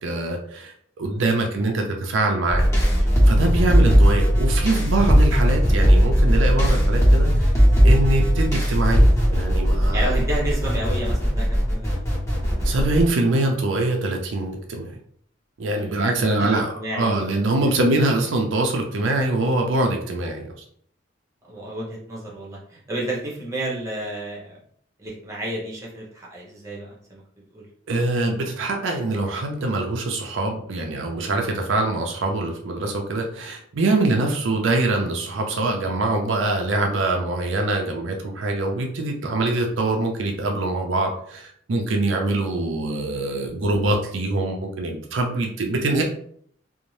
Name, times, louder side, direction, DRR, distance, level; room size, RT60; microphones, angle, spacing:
voice 1, 0.0-2.7 3.3-7.5 7.8-10.2 12.6-14.9 15.6-16.7 16.9-20.5 27.9-46.0, right 2 dB, 75° right, 2 dB, 0.5 m, -24 dB
voice 2, 1.1-1.5 9.9-11.9 12.1-12.3 15.7-17.3 21.4-24.6 25.0-27.2 27.5-27.7, right 1 dB, 15° right, -4 dB, 0.8 m, -31 dB
sound 1, 2.5-13.0, equal, 15° left, 1.1 m, -18 dB
2.6 x 2.0 x 3.1 m, 0.63 s
head